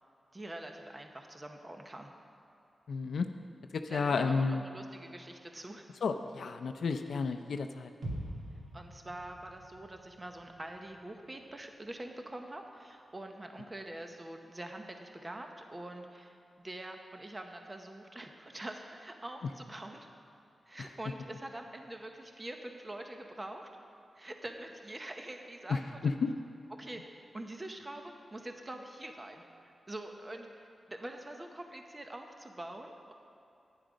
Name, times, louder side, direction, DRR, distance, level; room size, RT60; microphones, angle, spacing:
voice 1, 0.3-2.1 3.9-5.8 8.7-20.1 20.7-23.7 24.1-26.0 26.7-27.0 27.3-29.5 29.9-33.1, right 1 dB, 25° right, 4 dB, 0.8 m, -45 dB
voice 2, 2.9-3.3 3.7-4.6 6.0-7.9 25.7-26.3, left 4 dB, 80° left, 7 dB, 0.5 m, -32 dB
sound 1, 8.0-12.0 12.3-12.4, right 1 dB, 85° right, 2.3 m, -45 dB
11.5 x 9.8 x 5.1 m, 2.8 s
wide cardioid pair, 100°, 0 cm